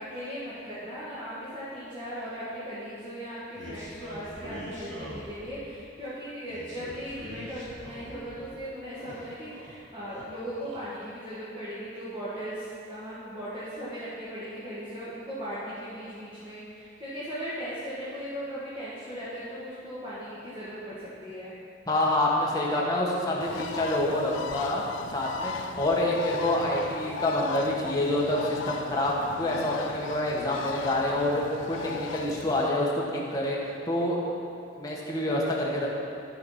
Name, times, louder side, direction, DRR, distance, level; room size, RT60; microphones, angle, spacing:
voice 1, 0.0-21.5, equal, 25° right, -11 dB, 1.8 m, -38 dB
sound 1, 3.5-5.7 6.5-8.5 8.8-9.7 10.0-10.8, equal, 85° right, 2.2 m, -44 dB
voice 2, 21.9-24.8 25.1-33.6 33.9-34.2 34.8-35.9, left 1 dB, 20° left, -4 dB, 1.4 m, -27 dB
Bird, 23.4-32.7, left 6 dB, 80° left, 0.4 m, -38 dB
13.0 x 4.9 x 5.7 m, 2.7 s
head